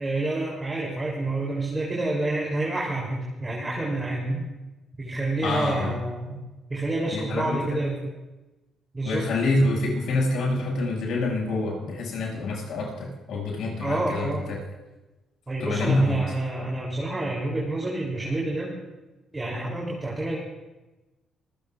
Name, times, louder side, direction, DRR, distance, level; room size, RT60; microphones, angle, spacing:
voice 1, 0.0-4.5 4.9-6.4 6.7-8.1 8.9-9.3 13.8-14.5 15.5-18.7 19.3-20.4, right 2 dB, 20° right, -4 dB, 3.1 m, -28 dB
voice 2, 5.4-6.0 7.1-7.8 9.0-14.6 15.6-16.2, left 2 dB, 75° left, -2 dB, 6.0 m, -26 dB
25.5 x 15.5 x 2.4 m, 1.1 s
cardioid pair, 90°, 0 cm